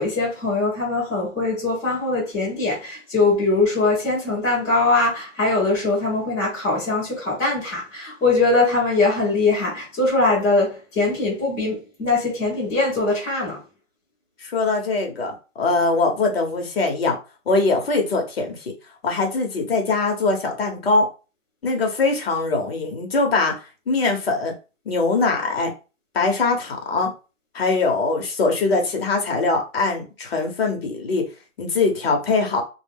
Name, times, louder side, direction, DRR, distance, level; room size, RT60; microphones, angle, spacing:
voice 1, 0.0-13.6, left 3 dB, 10° left, 0.8 m, -21 dB
voice 2, 14.4-17.2 17.5-18.7 19.0-21.1 21.6-23.5 23.9-24.5 24.9-25.7 26.1-27.1 27.5-31.2 31.6-32.6, left 3 dB, 50° left, 1.0 m, -22 dB
2.3 x 2.2 x 3.4 m
hypercardioid pair, 160°, 39 cm